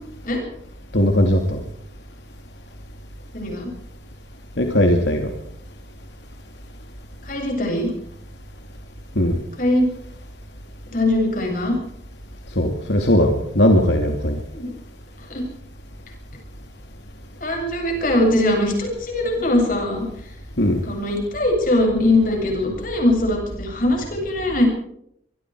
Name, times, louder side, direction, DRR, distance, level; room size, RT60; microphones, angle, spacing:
voice 1, 0.9-1.6 4.6-5.3 9.1-9.4 12.6-14.4 20.6-20.8, left 1 dB, 80° left, 2.5 m, -18 dB
voice 2, 3.3-3.7 7.2-7.9 9.6-9.9 10.9-11.7 14.5-14.7 15.3-15.4 17.4-20.1 20.8-24.7, left 1 dB, 50° left, 7.7 m, -21 dB
25.0 x 23.0 x 4.8 m
head